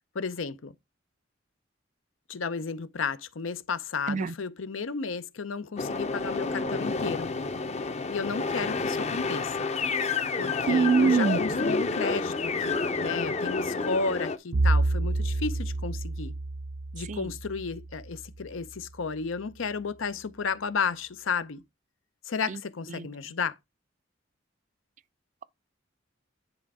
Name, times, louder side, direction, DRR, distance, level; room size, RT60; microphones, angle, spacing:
voice 1, 0.1-0.7 2.3-7.3 8.1-9.7 10.4-16.3 16.9-21.6 22.3-23.6, left 5 dB, 85° left, 0.7 m, -33 dB
sound 1, 5.8-14.4, left 4 dB, 35° left, 0.6 m, -29 dB
voice 2, 10.7-11.4 17.1-17.2 23.0-23.1, right 5 dB, 40° right, 0.4 m, -23 dB
Bowed string instrument, 14.5-18.7, right 2 dB, 90° right, 0.6 m, -29 dB
9.9 x 3.4 x 4.8 m
head